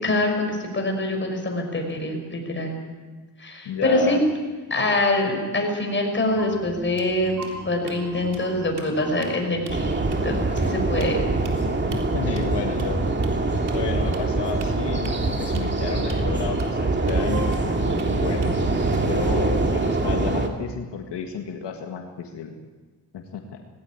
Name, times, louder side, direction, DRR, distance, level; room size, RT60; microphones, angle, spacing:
voice 1, 0.0-2.8 3.4-4.2 4.7-10.0 10.2-11.2, left 1 dB, 30° left, 2 dB, 6.0 m, -24 dB
voice 2, 3.7-4.2 11.9-13.0 13.7-18.6 19.1-22.5 23.1-23.6, left 7 dB, 80° left, 3 dB, 1.9 m, -32 dB
sound 1, 6.3-20.3, right 2 dB, 45° right, 6.9 m, -42 dB
sound 2, 6.5-6.7 7.0-8.0 8.3-8.5 8.7-9.3 9.7-9.8 10.1-10.2 10.6-10.7 11.0-11.1 11.4-11.6 11.9-12.0 12.4-12.5 12.8-12.9 13.2-13.3 13.7-13.8 14.1-14.3 14.6-15.7 16.1-16.2 16.6-16.7 17.1-17.2 17.5-18.1 18.4-19.2, right 7 dB, 70° right, 3.7 m, -44 dB
sound 3, 9.7-20.5, right 2 dB, 25° right, 2.4 m, -24 dB
18.5 x 17.0 x 9.7 m, 1.4 s
cardioid pair, 105°, 41 cm